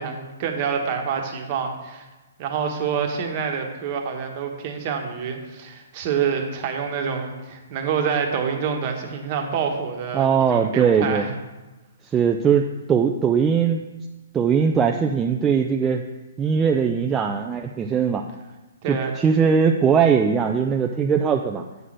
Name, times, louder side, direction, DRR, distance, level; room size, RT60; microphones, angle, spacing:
voice 1, 0.0-2.0 2.4-11.3 18.8-19.1, right 6 dB, 40° right, 3 dB, 1.2 m, -27 dB
voice 2, 10.1-11.3 12.0-13.9 14.3-16.0 16.4-18.2 18.9-21.6, right 6 dB, 15° right, 3 dB, 0.3 m, -20 dB
7.9 x 3.8 x 6.3 m, 1.1 s
hypercardioid pair, 140°, 0 cm